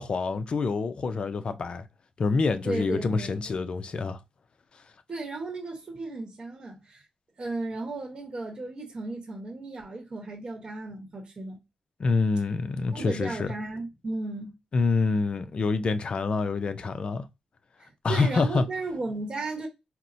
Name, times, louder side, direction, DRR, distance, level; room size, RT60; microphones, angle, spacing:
voice 1, 0.0-1.8 2.2-4.2 12.0-13.5 14.7-17.3 18.0-18.6, left 4 dB, 45° left, 0.4 m, -26 dB
voice 2, 2.6-3.4 5.1-7.0 7.4-11.6 12.9-14.5 17.8-19.7, right 2 dB, 35° right, 1.0 m, -35 dB
4.2 x 2.0 x 2.6 m
wide cardioid pair, 125°, 2 cm